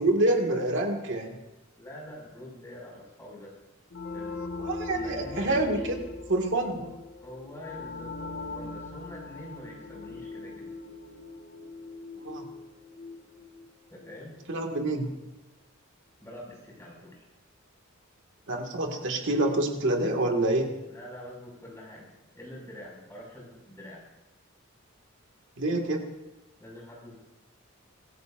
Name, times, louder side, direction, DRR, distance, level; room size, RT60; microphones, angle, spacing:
voice 1, 0.0-1.4 4.6-6.0 6.3-6.9 12.2-12.5 14.5-15.1 18.5-20.7 25.6-26.1, right 2 dB, 60° right, 3 dB, 2.0 m, -27 dB
voice 2, 1.7-3.5 4.1-4.4 4.9-5.9 7.2-10.7 13.9-14.4 16.2-17.2 20.9-24.0 26.6-27.2, left 1 dB, 15° left, -4 dB, 5.8 m, -45 dB
sound 1, 3.9-14.3, left 3 dB, 65° left, 1.5 m, -40 dB
24.5 x 15.0 x 2.6 m, 1.0 s
head